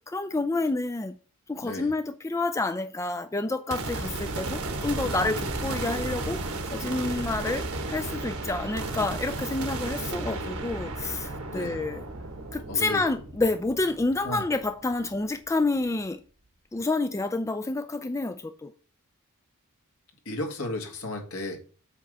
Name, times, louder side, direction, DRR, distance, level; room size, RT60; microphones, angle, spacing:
voice 1, 0.1-1.1 1.5-6.4 6.7-12.0 12.5-16.2 16.7-18.7, left 2 dB, 15° left, 0.3 m, -29 dB
voice 2, 1.6-1.9 5.1-5.3 11.5-11.9 12.7-13.0 14.2-14.4 20.3-21.6, left 2 dB, 75° left, 2.0 m, -34 dB
sound 1, 3.7-15.1, right 2 dB, 75° right, 1.3 m, -34 dB
8.2 x 3.4 x 6.5 m
head